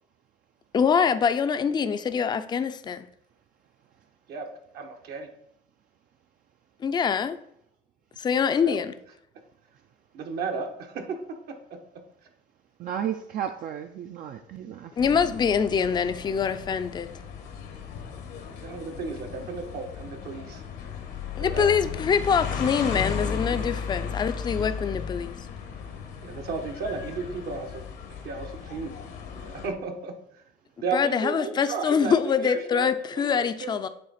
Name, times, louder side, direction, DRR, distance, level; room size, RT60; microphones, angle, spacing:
voice 1, 0.7-3.0 6.8-7.4 8.2-8.9 15.0-17.1 21.4-25.4 30.9-33.9, left 6 dB, 25° left, 0.4 m, -24 dB
voice 2, 4.7-5.3 8.6-8.8 10.1-11.0 18.6-20.6 21.4-21.7 26.2-27.8 28.2-28.9 29.4-30.1 30.8-33.8, right 4 dB, 70° right, 1.0 m, -34 dB
voice 3, 12.8-15.0, right 9 dB, 55° right, 0.4 m, -33 dB
sound 1, 15.0-29.7, left 6 dB, 75° left, 1.2 m, -35 dB
7.8 x 3.3 x 4.1 m
cardioid pair, 110°, 17 cm